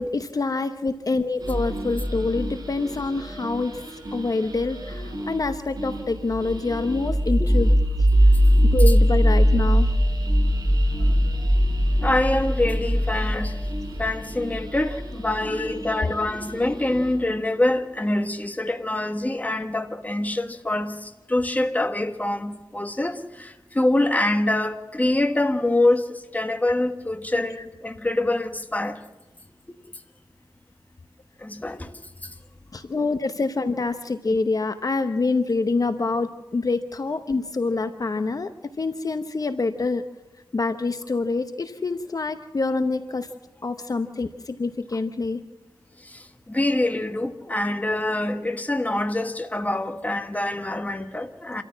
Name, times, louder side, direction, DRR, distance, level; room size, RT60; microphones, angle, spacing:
voice 1, 0.0-3.8 4.1-7.7 8.0-8.1 8.6-9.9 11.0-11.1 15.5-16.0 32.7-38.5 38.8-40.0 40.5-43.3 43.6-45.4, left 3 dB, 45° left, 0.9 m, -26 dB
sound 1, 1.4-17.3, equal, 50° right, 6.2 m, -22 dB
voice 2, 12.0-13.5 14.0-29.0 31.4-31.9 46.1-51.6, left 1 dB, 20° left, 1.4 m, -25 dB
27.0 x 14.0 x 7.4 m
wide cardioid pair, 100°, 8 cm